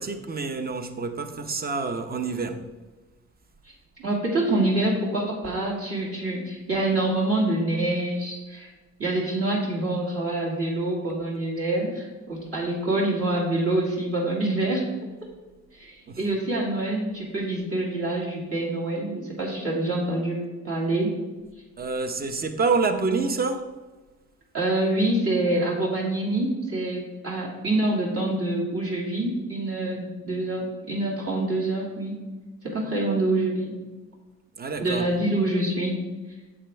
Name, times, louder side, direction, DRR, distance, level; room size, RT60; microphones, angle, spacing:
voice 1, 0.0-2.6 16.1-16.2 21.8-23.7 34.6-35.1, right 4 dB, 30° right, 0.8 m, -27 dB
voice 2, 4.0-8.7 9.0-14.8 15.7-21.1 24.5-32.1 32.6-33.7 34.8-36.0, right 2 dB, 50° right, 2.3 m, -26 dB
8.6 x 7.0 x 3.4 m
cardioid pair, 90°, 30 cm